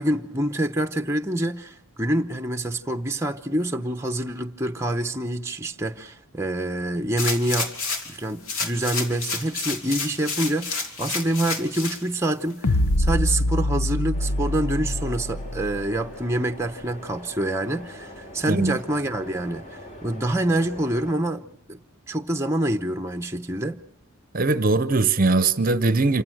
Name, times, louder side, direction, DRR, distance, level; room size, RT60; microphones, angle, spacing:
voice 1, 0.0-7.7 8.1-21.8 22.1-23.8, right 1 dB, 10° right, 0.9 m, -26 dB
sound 1, 7.2-8.1 8.5-12.0 12.5-12.6, left 4 dB, 70° left, 3.1 m, -29 dB
sound 2, 12.6-16.1, left 1 dB, 85° left, 0.9 m, -24 dB
sound 3, 14.1-21.1, left 1 dB, 35° left, 3.3 m, -43 dB
voice 2, 18.5-18.8 24.3-26.2, right 3 dB, 40° right, 0.8 m, -20 dB
27.5 x 15.5 x 7.9 m
head